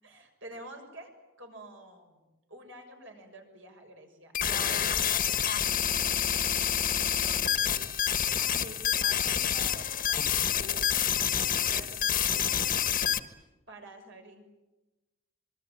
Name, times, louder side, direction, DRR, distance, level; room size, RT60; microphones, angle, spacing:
voice 1, 0.0-1.1 1.4-2.2 2.5-5.7 6.0-12.7 13.7-14.5, right 2 dB, 65° right, 4 dB, 6.6 m, -49 dB
sound 1, 4.3-13.2, left 9 dB, 40° left, 1.4 m, -28 dB
26.0 x 23.5 x 9.2 m, 1.1 s
head